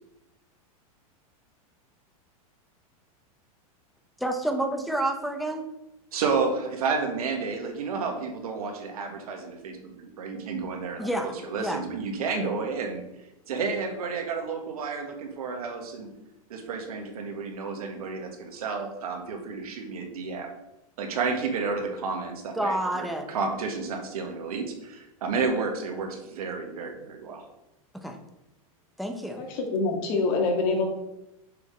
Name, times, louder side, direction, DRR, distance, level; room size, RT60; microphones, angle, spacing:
voice 1, 4.2-5.6 11.0-11.3 11.6-11.8 22.6-23.3 28.0-28.2 29.0-29.4, right 1 dB, ahead, 5 dB, 1.1 m, -28 dB
voice 2, 6.1-13.0 13.5-16.1 16.5-20.5 21.0-27.4, right 4 dB, 80° right, 4 dB, 1.7 m, -31 dB
voice 3, 29.3-30.9, left 3 dB, 55° left, 2 dB, 2.1 m, -25 dB
6.9 x 5.0 x 5.1 m, 0.90 s
hypercardioid pair, 120°, 19 cm